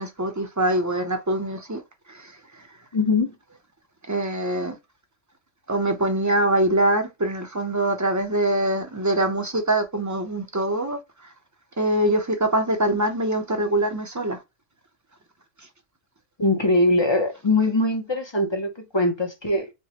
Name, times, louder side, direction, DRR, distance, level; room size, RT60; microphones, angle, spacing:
voice 1, 0.0-1.8 2.1-2.7 4.1-4.8 5.7-11.0 11.8-14.4, right 1 dB, 20° right, 0.5 m, -24 dB
voice 2, 2.9-3.4 16.4-19.7, left 2 dB, 30° left, 0.6 m, -22 dB
4.5 x 2.2 x 2.8 m
omnidirectional pair, 1.3 m